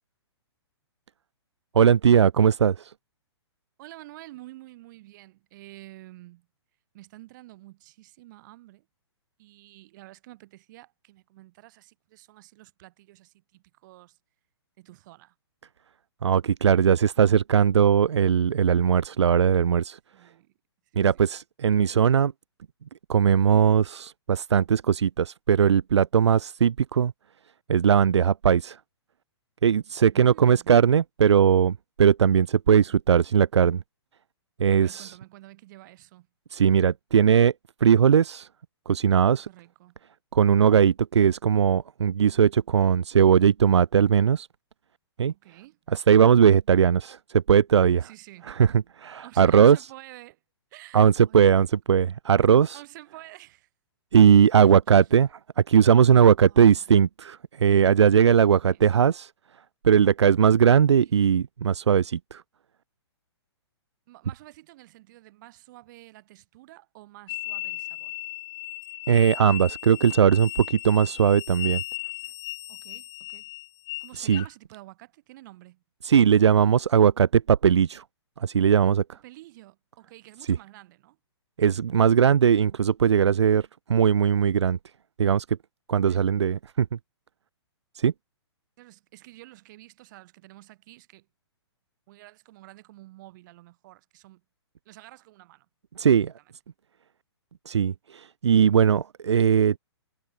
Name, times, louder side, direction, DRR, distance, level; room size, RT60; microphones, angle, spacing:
voice 1, 1.7-2.9 16.2-20.0 21.0-22.3 23.1-27.1 27.7-28.8 29.6-33.8 34.6-35.1 36.5-37.5 37.8-38.5 38.9-39.5 40.3-44.5 45.2-45.3 45.9-48.1 48.5-48.7 49.0-49.8 50.9-52.8 54.1-55.3 55.7-59.3 59.8-62.4 69.1-71.8 74.2-74.4 76.0-78.0 78.4-79.0 81.6-84.8 85.2-85.4 85.9-86.9 87.9-88.1 96.0-96.3 97.7-99.8, right 8 dB, 75° right, 0.7 m, -19 dB
voice 2, 3.8-6.5 6.9-8.9 9.4-14.2 14.8-15.4 20.1-20.5 20.9-21.3 30.1-30.8 34.7-36.3 39.3-40.0 45.3-45.8 48.0-48.5 49.2-50.4 50.7-51.5 52.7-53.7 54.6-54.8 56.4-57.0 58.4-58.9 61.0-61.2 64.1-68.2 72.7-73.5 74.0-75.8 79.1-81.2 86.0-86.3 88.8-91.3 92.1-94.4 94.9-95.7 96.4-96.5, right 18 dB, 45° right, 5.2 m, -49 dB
sound 1, 67.3-74.5, left 18 dB, 25° left, 2.7 m, -36 dB
hypercardioid pair, 130°, 15 cm